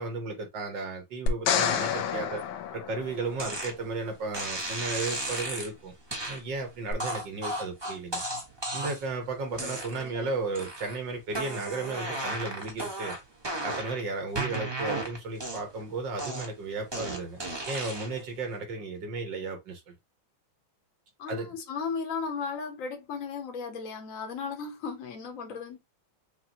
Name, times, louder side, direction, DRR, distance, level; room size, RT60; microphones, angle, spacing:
voice 1, 0.0-2.4 2.7-5.9 6.3-8.2 8.7-13.2 13.6-17.4 17.7-19.9 21.3-21.5, right 3 dB, 65° right, 2.0 m, -34 dB
sound 1, 1.3-3.6 6.9-7.0, left 7 dB, 80° left, 1.4 m, -29 dB
sound 2, 3.4-3.7 4.3-5.7 6.1-6.4 7.0-9.1 9.5-10.2 10.5-11.0 11.3-14.0 14.4-15.8 16.2-18.2, right 2 dB, 20° right, 0.8 m, -34 dB
voice 2, 9.6-10.3 21.2-25.8, left 5 dB, 50° left, 1.3 m, -36 dB
5.8 x 2.3 x 2.8 m
omnidirectional pair, 2.2 m